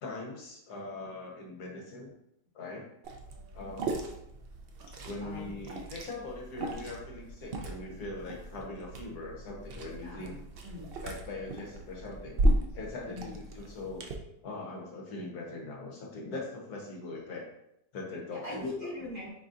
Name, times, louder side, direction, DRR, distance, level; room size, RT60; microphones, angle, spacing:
voice 1, 0.0-2.1 2.5-2.9 3.5-4.0 4.9-10.3 11.0-12.4 12.7-14.1 14.4-17.5 17.9-18.7, left 2 dB, 70° left, -1 dB, 1.5 m, -41 dB
Liquid, 3.0-14.1, right 1 dB, 75° right, 0.5 m, -35 dB
voice 2, 5.2-5.5 10.0-10.9 13.0-13.4 18.3-19.3, left 1 dB, 30° right, -8 dB, 2.1 m, -41 dB
5.1 x 4.0 x 2.5 m, 0.79 s
omnidirectional pair, 1.7 m